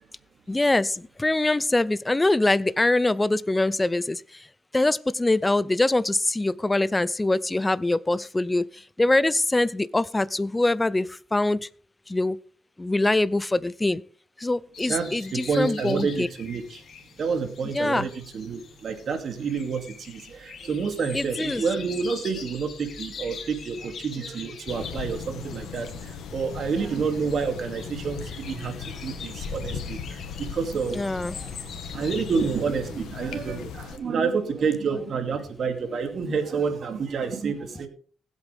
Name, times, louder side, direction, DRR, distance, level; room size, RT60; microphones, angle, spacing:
voice 1, 0.5-0.9 1.2-4.2 4.7-8.7 9.0-11.6 12.1-12.4 12.8-14.0 14.4-16.3 17.7-18.1 21.1-21.6 30.9-31.3, left 2 dB, 15° left, 18 dB, 0.5 m, -23 dB
sound 1, 14.7-33.5, left 6 dB, 60° left, 2.8 m, -44 dB
voice 2, 14.9-16.8 17.2-31.6 31.9-37.9, right 5 dB, 60° right, 6 dB, 2.6 m, -29 dB
sound 2, 24.7-34.0, left 6 dB, 85° left, 1.6 m, -37 dB
20.0 x 8.2 x 3.5 m, 0.42 s
cardioid pair, 85°, 0 cm